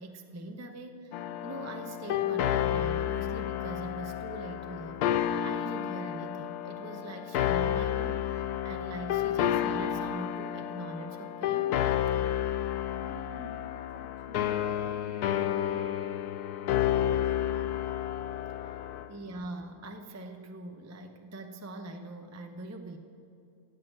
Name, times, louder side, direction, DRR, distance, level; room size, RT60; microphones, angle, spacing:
voice 1, 0.0-11.8 19.1-23.0, right 2 dB, 20° right, 5 dB, 0.4 m, -42 dB
sound 1, 1.1-19.1, left 11 dB, 85° left, 1.2 m, -31 dB
voice 2, 13.0-15.9 16.6-17.7 18.9-19.1, left 3 dB, 55° left, 4 dB, 1.6 m, -50 dB
16.5 x 8.4 x 7.6 m, 2.7 s
omnidirectional pair, 1.6 m